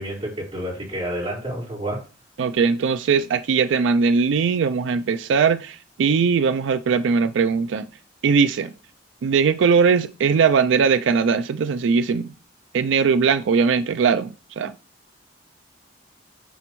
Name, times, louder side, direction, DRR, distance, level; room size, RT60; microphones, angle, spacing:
voice 1, 0.0-2.0, right 1 dB, 30° right, 4.2 m, -29 dB
voice 2, 2.4-7.8 8.2-8.7 9.2-12.3 12.7-14.7, right 5 dB, 90° right, 0.4 m, -20 dB
9.1 x 5.0 x 3.1 m
head